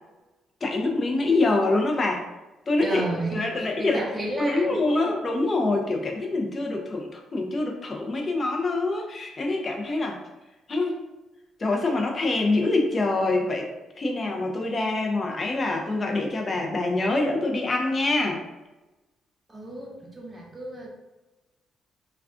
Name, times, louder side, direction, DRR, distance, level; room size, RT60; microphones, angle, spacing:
voice 1, 0.6-2.3 2.7-4.0 4.4-10.2 10.7-11.0 11.6-13.7 14.0-18.4, left 2 dB, 35° left, 1 dB, 0.6 m, -25 dB
voice 2, 2.8-5.1 19.5-20.9, right 2 dB, 30° right, -1 dB, 0.7 m, -33 dB
2.3 x 2.3 x 3.5 m, 1.1 s
cardioid pair, 90°, 0 cm